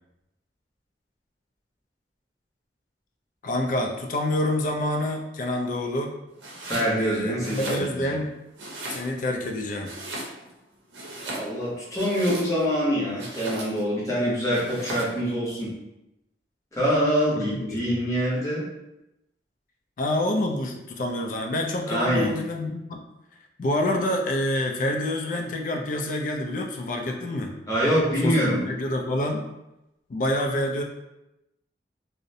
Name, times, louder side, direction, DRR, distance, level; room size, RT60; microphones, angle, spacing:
voice 1, 3.4-6.1 7.0-8.4 8.9-9.9 17.3-18.0 20.0-23.0 23.6-27.6 28.2-29.5 30.1-30.8, left 1 dB, 45° left, 2 dB, 0.3 m, -27 dB
Domestic sounds home sounds, 6.4-6.9 7.3-8.2 8.6-9.4 9.8-10.6 10.9-12.7 13.2-13.9 14.5-15.2, right 1 dB, 80° right, 0.6 m, -37 dB
voice 2, 6.6-8.2 11.2-15.7 16.7-18.6 21.9-22.3 27.7-28.6, equal, 15° left, -7 dB, 0.7 m, -25 dB
2.5 x 2.0 x 2.6 m, 0.92 s
head